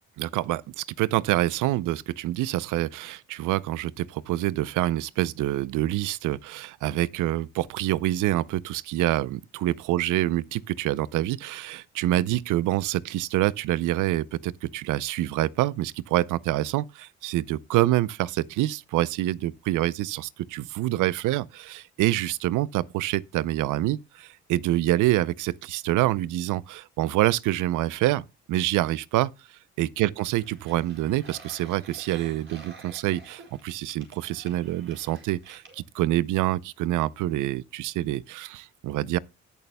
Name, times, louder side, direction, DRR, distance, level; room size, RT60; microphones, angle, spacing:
voice 1, 0.2-29.3 29.8-39.2, right 15 dB, 85° right, 0.5 m, -26 dB
sound 1, 30.4-35.8, right 4 dB, 40° right, 4.5 m, -49 dB
18.5 x 6.9 x 2.2 m
cardioid pair, 90°, 30 cm